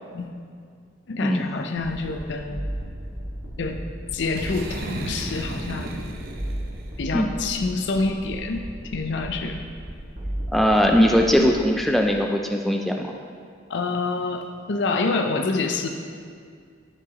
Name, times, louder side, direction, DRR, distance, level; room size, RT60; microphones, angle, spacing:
voice 1, 1.1-2.6 3.6-3.8 4.1-6.0 7.0-8.6 8.9-9.6 13.7-15.9, left 3 dB, 60° left, 3 dB, 0.5 m, -27 dB
sound 1, 1.7-12.2, equal, 65° right, 1.7 m, -36 dB
Boom, 4.3-7.1, right 1 dB, 50° right, 0.6 m, -34 dB
voice 2, 10.5-13.1, equal, ahead, 2 dB, 0.3 m, -20 dB
12.0 x 4.7 x 3.0 m, 2.1 s
head